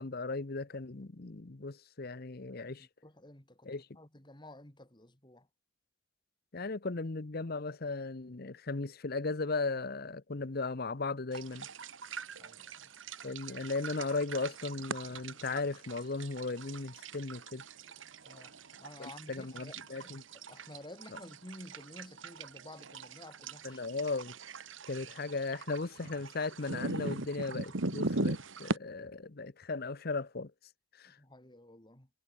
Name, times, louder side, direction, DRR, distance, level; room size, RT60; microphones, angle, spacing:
voice 1, 0.0-2.9 3.6-3.9 6.5-11.7 13.2-17.6 19.0-20.2 23.6-24.3 24.9-30.5 31.0-31.2, left 3 dB, 50° left, 0.9 m, -37 dB
voice 2, 2.8-5.5 12.4-12.9 18.2-23.8 31.0-32.1, left 1 dB, 25° left, 3.1 m, -52 dB
sound 1, 11.3-28.8, right 3 dB, 85° right, 1.9 m, -41 dB
head